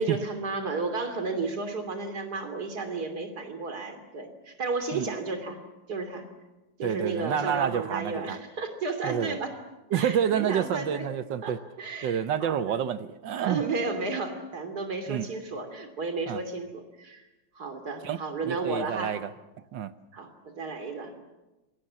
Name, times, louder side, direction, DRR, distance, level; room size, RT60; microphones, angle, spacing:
voice 1, 0.0-5.6 5.9-6.2 6.8-9.5 9.9-11.1 11.4-12.8 13.5-17.2 17.6-19.2 20.1-21.1, right 3 dB, 60° right, 3.4 m, -33 dB
voice 2, 6.8-8.4 9.0-9.4 9.9-11.6 12.0-13.6 15.1-15.3 16.3-16.4 18.0-19.3 19.7-19.9, right 8 dB, 85° right, 1.7 m, -28 dB
27.5 x 23.5 x 7.6 m
omnidirectional pair, 1.9 m